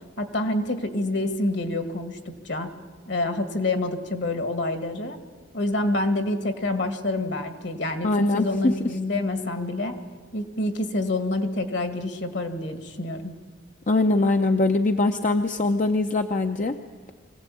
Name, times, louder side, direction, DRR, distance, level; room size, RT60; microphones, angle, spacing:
voice 1, 0.2-2.7 3.1-5.2 5.5-10.0 10.3-13.3, left 2 dB, 65° left, 8 dB, 2.1 m, -27 dB
voice 2, 8.0-8.7 13.9-16.7, left 2 dB, 40° left, 6 dB, 0.7 m, -22 dB
24.5 x 17.0 x 8.6 m, 1.5 s
head